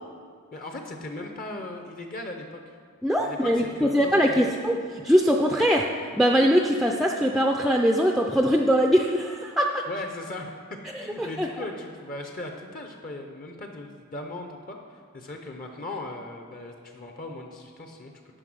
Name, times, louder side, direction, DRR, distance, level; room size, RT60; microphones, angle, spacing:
voice 1, 0.5-2.6 3.2-4.5 9.9-10.5 11.0-18.1, left 2 dB, 40° left, 3 dB, 0.7 m, -38 dB
voice 2, 3.0-4.7 5.0-5.9 6.1-9.8 10.9-11.5, equal, ahead, 2 dB, 0.3 m, -22 dB
9.9 x 5.6 x 6.1 m, 2.1 s
head